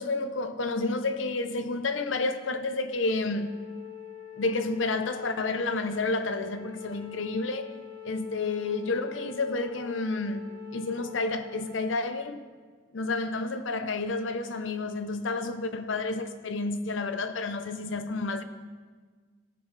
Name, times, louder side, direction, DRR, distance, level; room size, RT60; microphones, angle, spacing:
voice 1, 0.0-3.5 4.4-7.8 8.0-12.5 12.9-18.4, left 3 dB, 90° left, 0.7 m, -30 dB
Wind instrument woodwind instrument, 3.0-12.2, left 9 dB, 75° left, 1.9 m, -44 dB
17.0 x 8.4 x 3.3 m
head